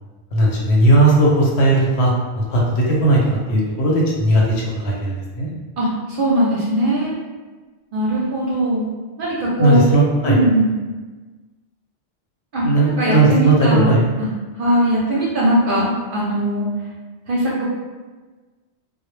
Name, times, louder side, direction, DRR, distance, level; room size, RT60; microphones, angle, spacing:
voice 1, 0.3-3.2 3.5-5.5 9.6-10.4 12.6-14.0, right 2 dB, 70° left, -3 dB, 0.8 m, -16 dB
voice 2, 6.2-7.1 7.9-8.9 9.2-10.0 10.3-10.7 12.5-12.6 13.0-14.3 14.6-16.7 17.3-17.7, right 1 dB, 60° right, -6 dB, 0.6 m, -19 dB
2.0 x 2.0 x 3.0 m, 1.3 s
omnidirectional pair, 1.2 m